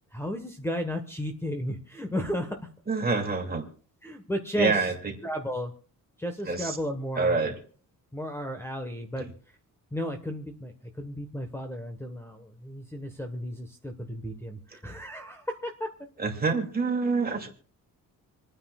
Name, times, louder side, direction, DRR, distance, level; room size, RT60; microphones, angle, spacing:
voice 1, 0.1-2.7 4.0-4.9 5.2-5.7 6.2-7.4 8.1-9.3 9.9-15.9, equal, 5° left, 5 dB, 1.3 m, -34 dB
voice 2, 2.9-3.6 4.6-5.1 6.5-6.8 7.2-7.6 9.2-9.3 16.2-17.5, right 4 dB, 25° right, 2 dB, 2.7 m, -27 dB
28.0 x 9.7 x 2.4 m, 0.43 s
wide cardioid pair, 145°, 34 cm